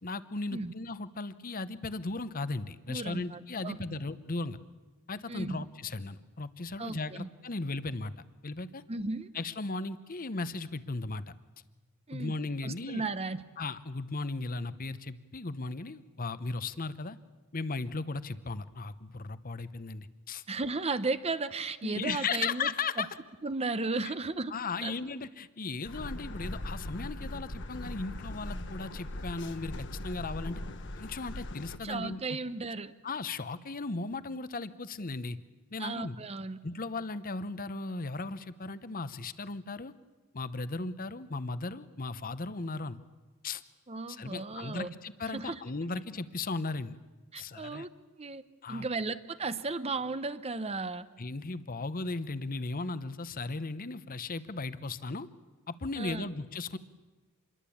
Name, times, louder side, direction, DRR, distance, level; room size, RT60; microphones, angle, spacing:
voice 1, 0.0-4.6 5.1-8.1 8.4-8.8 9.3-11.2 12.1-13.0 13.6-17.2 17.5-20.4 21.8-23.1 24.5-30.6 31.0-32.2 33.0-35.4 35.7-36.2 36.6-39.9 40.3-43.0 43.4-43.6 44.1-47.0 47.4-47.9 48.6-48.9 51.2-55.3 55.7-56.8, left 3 dB, 40° left, 14 dB, 0.9 m, -36 dB
voice 2, 2.9-4.0 5.3-5.7 6.8-7.3 8.9-9.3 12.1-12.4 12.6-13.4 20.5-22.7 23.0-23.1 23.4-24.5 24.8-24.9 31.8-32.9 35.8-36.6 43.9-44.9 45.3-45.6 47.3-47.9 48.2-48.4 48.7-51.1 56.0-56.3, right 3 dB, 30° right, 12 dB, 0.8 m, -35 dB
sound 1, 25.9-31.8, left 1 dB, 60° left, 1.3 m, -40 dB
26.5 x 22.0 x 8.6 m, 1.2 s
head